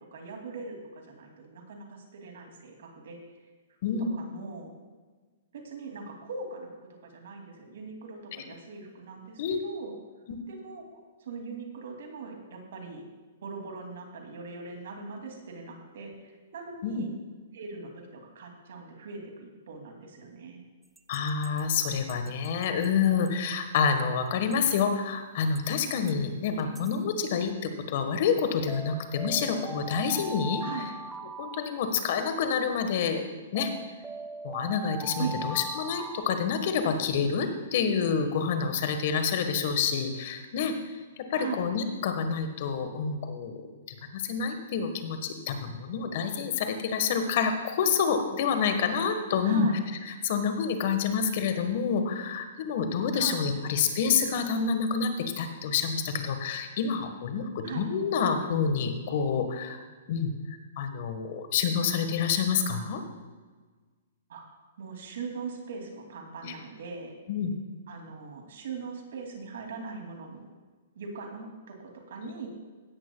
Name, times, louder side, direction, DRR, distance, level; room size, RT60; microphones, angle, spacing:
voice 1, 0.1-3.4 4.0-4.7 5.5-10.0 10.5-13.0 13.4-17.1 17.5-20.6 26.5-26.7 30.6-30.9 35.2-35.4 41.3-41.6 49.4-49.8 53.1-53.5 57.6-57.9 64.3-64.5 64.8-67.1 67.9-70.4 70.9-72.5, right 4 dB, 70° right, 2 dB, 2.6 m, -41 dB
sound 1, 21.0-22.9 23.3-23.4 23.8-23.9 24.5-24.9 25.6-26.1 26.6-27.0 28.7-32.4 33.6-36.2, right 2 dB, 10° right, 0.4 m, -40 dB
voice 2, 21.1-30.6 31.4-33.3 33.5-33.7 34.4-40.7 41.3-43.6 44.1-49.7 50.2-60.3 60.8-63.0 66.4-66.5 67.3-67.5, left 6 dB, 55° left, 7 dB, 1.4 m, -28 dB
16.0 x 11.0 x 2.3 m, 1.4 s
hypercardioid pair, 135°, 0 cm